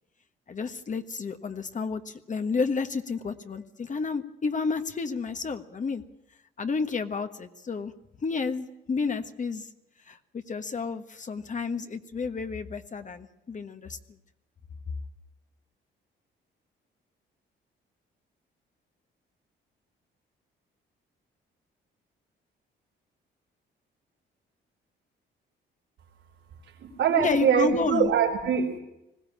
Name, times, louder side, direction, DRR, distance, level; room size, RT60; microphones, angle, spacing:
voice 1, 0.5-6.0 6.6-7.9 8.2-9.7 10.1-14.0 27.2-28.1, left 4 dB, 40° left, 8 dB, 1.4 m, -31 dB
voice 2, 26.8-28.8, right 7 dB, 80° right, -4 dB, 4.3 m, -23 dB
20.5 x 16.0 x 8.7 m, 0.89 s
cardioid pair, 90°, 20 cm